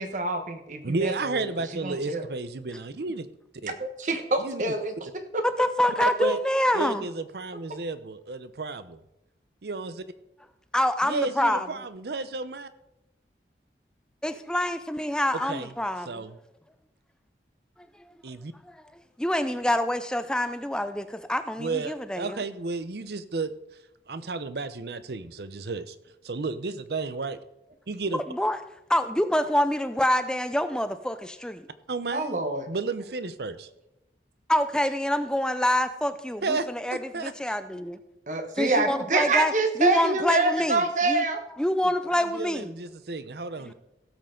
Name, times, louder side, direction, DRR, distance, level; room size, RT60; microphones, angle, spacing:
voice 1, 0.0-1.4 1.8-2.2 3.8-5.4 32.1-32.7 38.3-41.4, right 2 dB, 45° right, 7 dB, 1.1 m, -26 dB
voice 2, 0.8-3.3 3.6-3.8 4.4-4.7 6.0-6.4 6.7-9.0 9.6-10.0 11.0-12.7 15.5-15.7 16.1-16.4 18.2-18.5 21.6-23.5 24.1-26.0 26.2-27.4 27.9-28.2 31.9-32.4 32.7-33.7 36.4-37.6 42.1-43.7, right 3 dB, 65° right, 13 dB, 0.7 m, -32 dB
voice 3, 5.4-7.0 10.7-11.7 14.2-16.2 19.2-22.4 28.3-28.6 28.9-31.6 34.5-38.0 38.6-39.5 39.8-41.2 41.6-42.7, left 1 dB, 5° left, 11 dB, 0.4 m, -26 dB
16.5 x 7.6 x 3.8 m, 0.88 s
head